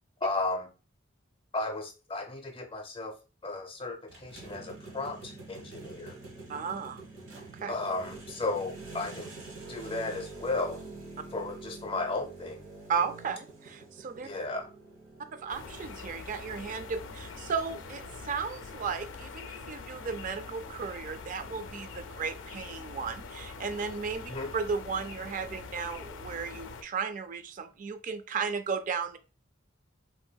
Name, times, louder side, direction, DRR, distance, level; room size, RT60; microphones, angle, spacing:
voice 1, 0.2-0.7 1.5-3.1 3.4-6.2 7.7-9.4 9.7-10.8 11.3-12.6 14.2-14.7 24.3-24.5, left 2 dB, 30° left, 3 dB, 0.5 m, -34 dB
sound 1, 4.1-18.4, right 3 dB, 90° right, 1.0 m, -47 dB
voice 2, 6.5-7.0 7.3-7.7 12.9-14.3 15.3-29.2, right 5 dB, 40° right, 9 dB, 0.3 m, -35 dB
sound 2, 15.5-26.8, left 4 dB, 75° left, 0.4 m, -44 dB
3.3 x 2.6 x 2.2 m, 0.34 s
head